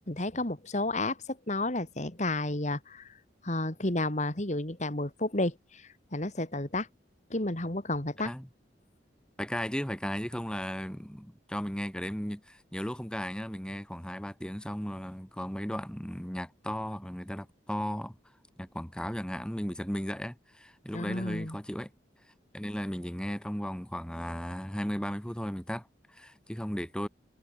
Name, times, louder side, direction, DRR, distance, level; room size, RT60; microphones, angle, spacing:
voice 1, 0.1-3.1 3.4-5.8 6.1-6.9 7.3-8.3 20.9-21.6, left 2 dB, 40° left, 2.6 m, -31 dB
voice 2, 9.4-18.1 18.6-21.9 22.5-27.1, equal, 5° left, 1.5 m, -36 dB
head